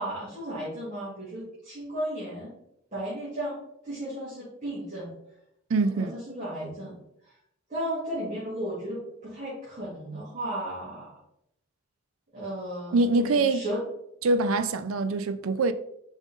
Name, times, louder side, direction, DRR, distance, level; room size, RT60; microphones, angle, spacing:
voice 1, 0.0-2.5 2.9-5.1 5.8-7.3 7.7-11.1 12.3-13.8, right 1 dB, 35° right, 2.5 m, -35 dB
voice 2, 5.7-6.2 12.9-13.6 14.2-15.7, right 3 dB, 75° right, 0.4 m, -24 dB
5.3 x 5.0 x 3.6 m
head